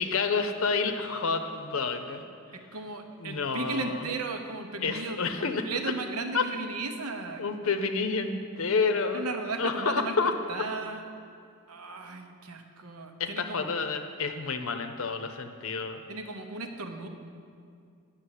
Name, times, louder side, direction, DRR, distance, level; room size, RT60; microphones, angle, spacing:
voice 1, 0.0-2.2 3.2-4.1 4.8-5.6 6.3-6.5 7.4-10.3 13.2-16.0, left 4 dB, 65° left, 7 dB, 0.7 m, -29 dB
voice 2, 2.5-7.4 9.1-11.0 11.7-13.7 16.1-17.1, right 3 dB, 80° right, 6 dB, 0.9 m, -36 dB
9.7 x 6.2 x 8.0 m, 2.3 s
head